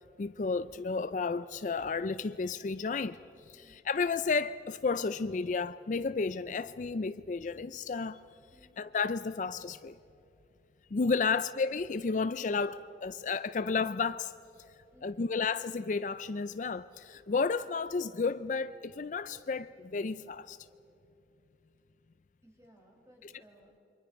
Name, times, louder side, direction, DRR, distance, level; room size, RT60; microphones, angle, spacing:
voice 1, 0.2-8.2 8.8-10.0 10.9-14.3 15.0-20.6, left 4 dB, 45° left, 0.4 m, -32 dB
voice 2, 14.8-15.3 21.6-21.7 22.4-23.7, right 1 dB, 15° right, 4.8 m, -62 dB
29.0 x 24.5 x 5.2 m
head